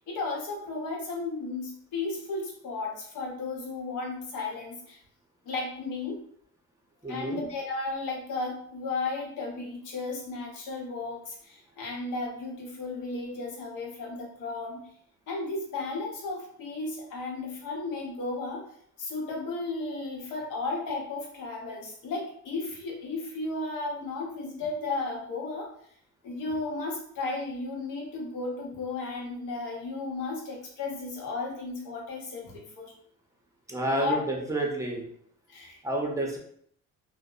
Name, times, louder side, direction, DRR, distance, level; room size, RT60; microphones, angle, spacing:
voice 1, 0.1-5.0 5.4-6.2 7.1-14.8 15.3-18.7 19.0-25.7 26.2-32.9 34.0-34.4 35.5-35.8, left 3 dB, 85° left, -2 dB, 0.8 m, -34 dB
voice 2, 7.0-7.4 33.7-35.0 35.8-36.4, right 1 dB, 10° right, -1 dB, 0.5 m, -29 dB
2.6 x 2.0 x 2.3 m, 0.65 s
cardioid pair, 90°, 30 cm